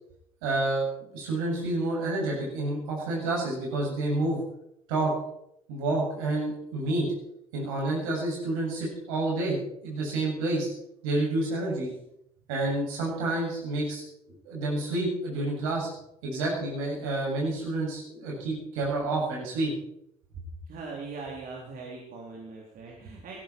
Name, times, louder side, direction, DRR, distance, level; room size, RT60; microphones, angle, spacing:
voice 1, 0.4-4.4 4.9-5.1 5.7-7.1 7.5-9.6 9.8-10.7 11.0-11.9 12.5-14.0 14.3-15.9 16.2-19.7, right 2 dB, 70° right, -3 dB, 7.9 m, -29 dB
voice 2, 20.7-23.4, right 4 dB, 50° right, -2 dB, 3.9 m, -40 dB
19.0 x 14.5 x 4.7 m, 0.76 s
figure-of-eight pair, 55°, 19 cm